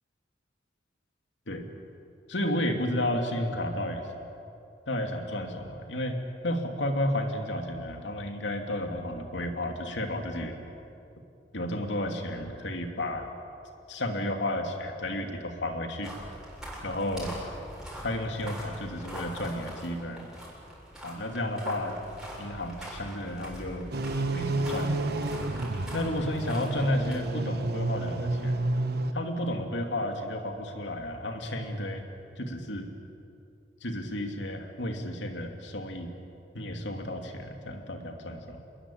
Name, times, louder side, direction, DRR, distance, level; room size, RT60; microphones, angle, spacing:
voice 1, 2.3-4.1 4.9-6.2 6.4-10.6 11.5-13.3 13.9-16.1 16.8-17.3 18.0-20.3 21.0-22.0 22.4-23.9 24.3-25.1 25.9-28.6 29.1-32.0 32.4-32.9 33.8-36.1 36.5-38.6, left 1 dB, 75° left, 4 dB, 3.0 m, -32 dB
sound 1, 16.0-27.2, equal, 5° right, 7.6 m, -42 dB
sound 2, 23.9-29.1, right 2 dB, 60° right, 1.3 m, -30 dB
27.5 x 21.5 x 8.8 m, 2.7 s
head